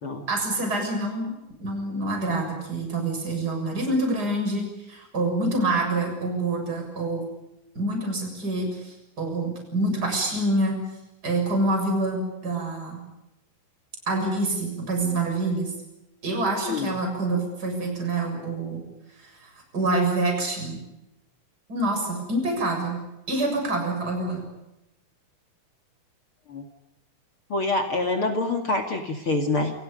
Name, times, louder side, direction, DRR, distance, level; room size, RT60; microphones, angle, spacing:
voice 1, 0.3-1.3 1.6-7.3 7.8-10.8 11.2-13.0 14.1-15.7 16.2-18.8 19.2-20.8 21.7-23.0 23.3-24.5, right 2 dB, 25° right, 2 dB, 7.6 m, -26 dB
voice 2, 16.6-16.9 26.5-26.7 27.5-29.7, left 2 dB, 45° left, 4 dB, 2.9 m, -26 dB
29.5 x 28.5 x 5.4 m, 0.94 s
omnidirectional pair, 3.8 m